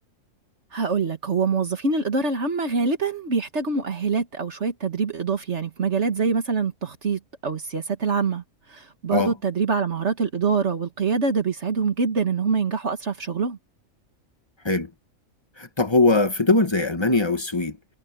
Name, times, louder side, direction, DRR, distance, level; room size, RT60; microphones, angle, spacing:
voice 1, 0.7-8.4 8.7-13.6, right 5 dB, 55° right, 1.9 m, -25 dB
voice 2, 15.6-17.8, left 2 dB, 20° left, 1.4 m, -21 dB
omnidirectional pair, 1.4 m